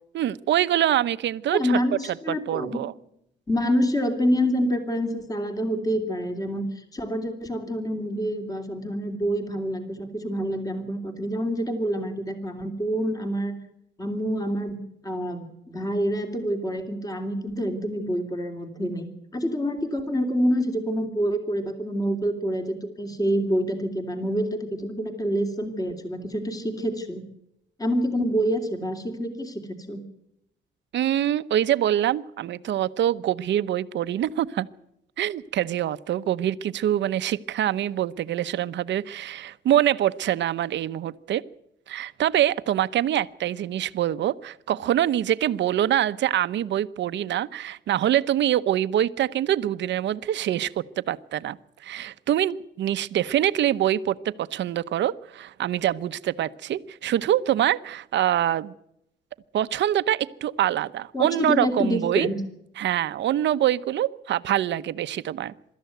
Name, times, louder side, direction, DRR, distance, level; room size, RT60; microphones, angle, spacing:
voice 1, 0.1-1.8 2.3-2.9 30.9-34.7 35.2-41.4 41.9-50.7 51.1-51.6 51.8-58.7 59.5-62.3 62.8-65.5, right 11 dB, 70° right, 13 dB, 0.9 m, -25 dB
voice 2, 1.5-2.8 3.5-13.5 14.0-19.1 19.3-27.2 27.8-30.0 61.1-62.4, equal, 20° left, 6 dB, 2.9 m, -27 dB
24.0 x 13.5 x 9.2 m, 0.82 s
cardioid pair, 135°, 20 cm